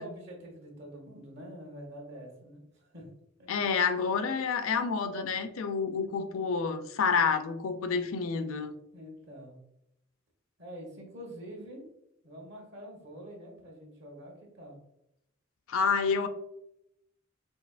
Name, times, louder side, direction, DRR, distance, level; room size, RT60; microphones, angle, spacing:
voice 1, 0.0-3.0 3.4-3.5 8.9-9.6 10.6-11.8 12.2-14.8, equal, 55° right, 0 dB, 1.3 m, -46 dB
voice 2, 3.5-8.7 15.7-16.3, left 5 dB, 80° left, 9 dB, 0.4 m, -29 dB
5.3 x 2.7 x 2.4 m, 0.81 s
head